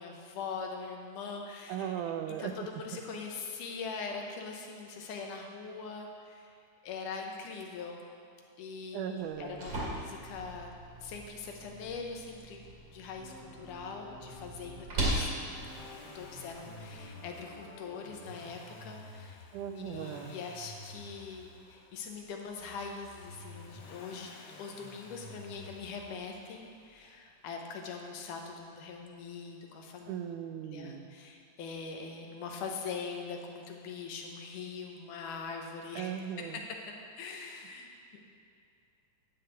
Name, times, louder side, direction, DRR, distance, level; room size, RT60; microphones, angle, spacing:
voice 1, 0.0-1.9 2.4-6.5 6.8-8.0 8.6-10.7 11.0-12.6 12.9-15.3 16.1-19.5 19.7-24.3 24.6-30.2 30.6-36.1 36.4-36.6 37.2-38.2, left 5 dB, 80° left, 2 dB, 2.6 m, -42 dB
voice 2, 1.7-2.6 8.9-9.6 19.5-20.4 30.1-31.1 36.0-36.6, right 9 dB, 80° right, 7 dB, 2.1 m, -37 dB
sound 1, 9.2-17.1, right 1 dB, 40° right, 2.8 m, -39 dB
sound 2, 13.2-18.4, left 2 dB, 45° left, 1.6 m, -52 dB
Accelerating revving vroom, 15.1-27.1 28.4-28.5, left 2 dB, 60° left, 1.7 m, -52 dB
10.5 x 5.7 x 8.1 m, 2.5 s
omnidirectional pair, 3.7 m